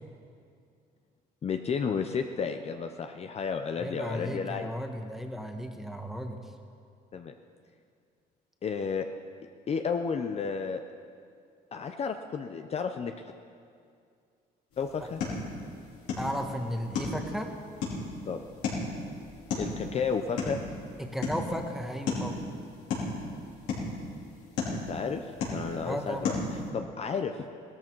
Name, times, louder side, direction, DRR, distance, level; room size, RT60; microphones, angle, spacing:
voice 1, 1.4-4.7 7.1-7.3 8.6-9.1 9.7-10.8 11.7-13.1 14.8-15.2 18.3-18.4 19.6-20.6 24.7-25.2 25.5-26.4 26.7-27.4, left 6 dB, 40° left, 6 dB, 0.7 m, -32 dB
voice 2, 3.8-6.4 16.2-17.5 21.0-22.4 25.8-26.3, equal, ahead, 4 dB, 1.4 m, -35 dB
sound 1, 14.7-26.7, left 3 dB, 85° left, 4.7 m, -36 dB
17.5 x 13.5 x 4.6 m, 2.3 s
cardioid pair, 110°, 17 cm